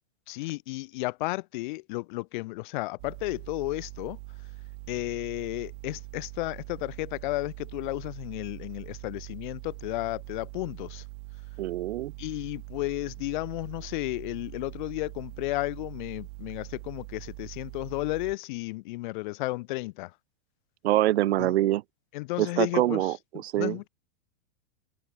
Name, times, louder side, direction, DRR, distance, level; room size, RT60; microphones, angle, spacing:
voice 1, 0.3-4.2 4.9-11.0 12.2-20.1 21.4-21.5 22.1-23.1 23.6-23.9, left 21 dB, 40° left, 3.3 m, -33 dB
sound 1, 3.0-18.3, right 30 dB, 35° right, 2.0 m, -43 dB
voice 2, 11.6-12.1 20.8-21.8 22.4-23.8, right 15 dB, 65° right, 0.7 m, -25 dB
open air
supercardioid pair, 170°, 36 cm